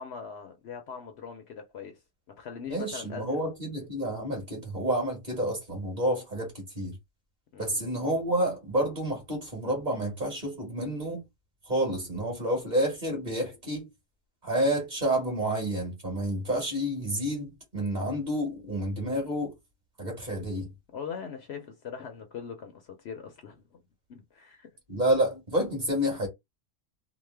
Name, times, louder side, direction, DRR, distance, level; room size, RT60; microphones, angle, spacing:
voice 1, 0.0-2.0 2.3-3.4 7.5-7.8 20.9-23.8 24.1-24.7, left 6 dB, 65° left, 0.8 m, -41 dB
voice 2, 2.7-7.0 7.6-11.2 11.7-13.9 14.4-19.5 20.0-20.7 24.9-26.3, right 1 dB, 35° right, 1.7 m, -29 dB
3.1 x 2.0 x 3.2 m
omnidirectional pair, 1.3 m